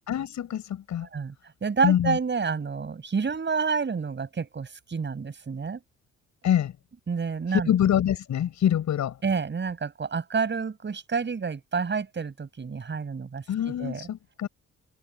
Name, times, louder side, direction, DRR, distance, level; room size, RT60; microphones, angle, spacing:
voice 1, 0.1-1.1 1.8-2.2 6.4-6.7 7.5-9.2 13.5-14.5, left 10 dB, 70° left, 7.6 m, -25 dB
voice 2, 1.0-1.3 1.6-5.8 7.1-7.7 9.2-14.1, right 5 dB, 35° right, 7.7 m, -29 dB
cardioid pair, 90°, 30 cm